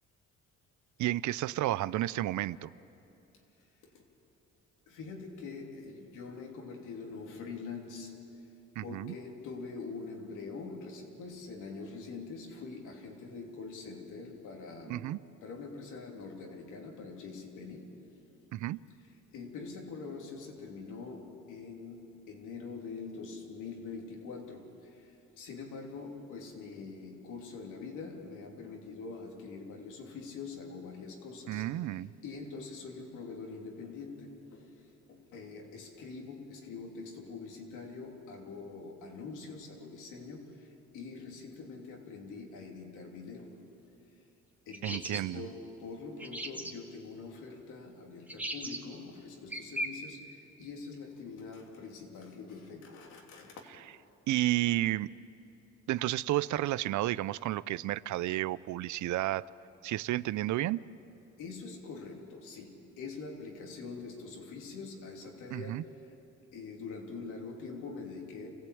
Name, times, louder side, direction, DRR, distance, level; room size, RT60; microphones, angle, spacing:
voice 1, 1.0-2.7 8.8-9.2 14.9-15.2 18.5-18.8 31.5-32.1 44.8-45.5 54.3-55.1 55.9-59.4 59.8-60.8 65.5-65.8, right 15 dB, 75° right, 19 dB, 0.6 m, -31 dB
voice 2, 4.9-8.2 8.8-18.2 19.3-43.7 44.6-53.8 61.4-66.1 66.5-68.5, left 4 dB, 90° left, 1 dB, 3.2 m, -44 dB
sound 1, 44.7-45.2 46.2-46.7 48.3-48.8 49.5-49.9, right 1 dB, 5° right, 2.1 m, -37 dB
27.0 x 16.0 x 8.6 m, 2.9 s
cardioid pair, 90°, 30 cm